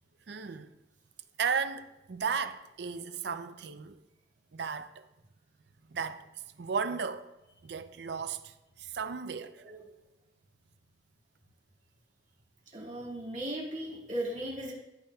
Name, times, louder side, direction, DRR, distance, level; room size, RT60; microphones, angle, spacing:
voice 1, 0.3-0.7 1.4-4.0 4.5-5.0 5.9-6.3 6.6-7.3 7.6-9.6, right 6 dB, 60° right, 0.4 m, -35 dB
voice 2, 12.7-14.7, right 1 dB, 40° right, 2.0 m, -37 dB
11.5 x 8.5 x 2.3 m
head